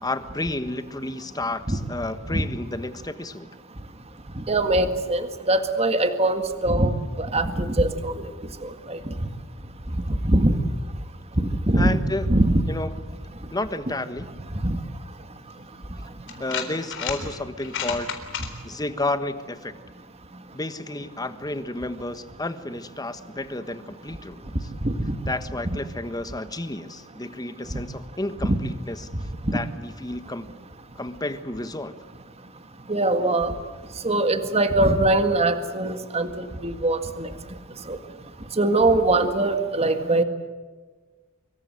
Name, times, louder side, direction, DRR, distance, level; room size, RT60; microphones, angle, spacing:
voice 1, 0.0-3.5 11.8-12.3 12.7-13.2 13.5-14.3 16.4-18.1 18.6-19.7 20.5-24.7 25.3-29.1 29.5-30.5 30.9-31.9, left 2 dB, 20° left, 11 dB, 1.4 m, -31 dB
voice 2, 4.5-6.9 7.2-8.1 8.9-9.0 10.3-10.6 11.7-12.0 12.3-12.6 14.6-14.8 24.8-24.9 28.5-28.6 32.9-33.5 34.0-37.3 37.9-38.0 38.6-40.2, right 2 dB, 30° right, 8 dB, 1.8 m, -21 dB
sound 1, 15.5-15.6 16.3-17.2 17.6-18.5, left 7 dB, 60° left, 3.9 m, -30 dB
25.5 x 23.5 x 7.9 m, 1.4 s
head